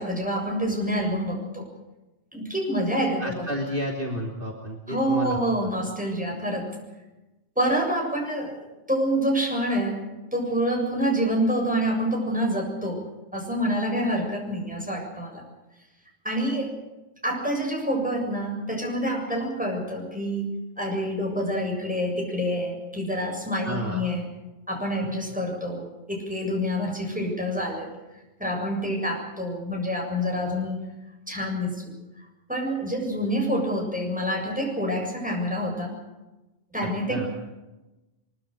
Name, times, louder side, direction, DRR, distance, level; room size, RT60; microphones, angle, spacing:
voice 1, 0.0-1.7 2.3-3.3 4.9-6.8 7.6-8.6 8.9-10.0 10.3-13.0 13.3-15.4 16.2-16.8 17.2-20.5 20.8-24.2 24.7-27.9 28.4-30.9 31.3-31.9 32.5-35.9 36.7-37.3, equal, 5° right, 0 dB, 7.3 m, -27 dB
voice 2, 3.2-5.4 23.6-24.0 37.1-37.3, equal, 45° right, -1 dB, 3.2 m, -31 dB
23.5 x 22.5 x 6.5 m, 1.0 s
omnidirectional pair, 1.2 m